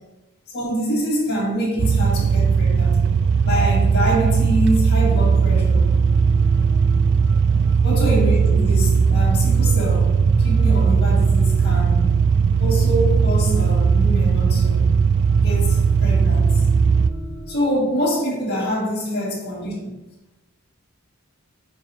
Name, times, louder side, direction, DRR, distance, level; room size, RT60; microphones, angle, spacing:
voice 1, 0.5-3.0 3.4-5.9 7.8-12.1 12.6-15.0 15.4-16.5 17.5-19.7, equal, 50° left, -4 dB, 2.2 m, -25 dB
sound 1, 1.8-17.1, right 5 dB, 55° right, 0.3 m, -17 dB
sound 2, 5.0-17.5, equal, 85° right, 2.1 m, -40 dB
9.1 x 5.0 x 3.0 m, 1.0 s
head